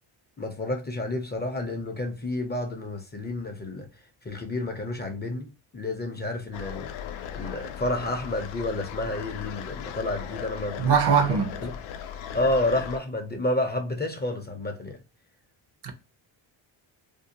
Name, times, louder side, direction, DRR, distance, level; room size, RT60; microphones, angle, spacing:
voice 1, 0.4-3.9 4.2-7.0 7.3-10.9 11.3-11.7 12.3-15.0, left 1 dB, 20° left, 0.5 m, -30 dB
sound 1, 6.5-13.0, left 9 dB, 75° left, 0.5 m, -37 dB
voice 2, 10.8-11.5 15.8-15.9, right 6 dB, 55° right, 0.7 m, -21 dB
2.6 x 2.1 x 2.7 m
supercardioid pair, 70°, 49 cm